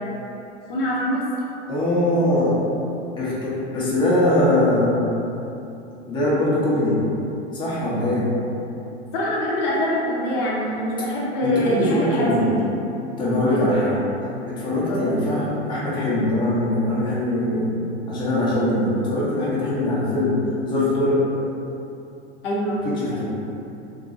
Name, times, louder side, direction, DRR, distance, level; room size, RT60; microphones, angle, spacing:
voice 1, 0.7-1.2 9.1-12.7 13.5-13.7 14.0-14.1 14.9-15.0 22.4-22.8 23.1-23.2, equal, 50° left, -5 dB, 0.7 m, -24 dB
voice 2, 1.7-2.6 3.2-5.1 6.1-7.0 7.5-8.3 11.4-12.5 13.2-14.0 14.5-17.8 18.1-20.4 20.7-21.2 22.8-23.4, left 1 dB, 10° left, -8 dB, 0.7 m, -22 dB
3.0 x 2.6 x 2.6 m, 2.8 s
figure-of-eight pair, 90°, 37 cm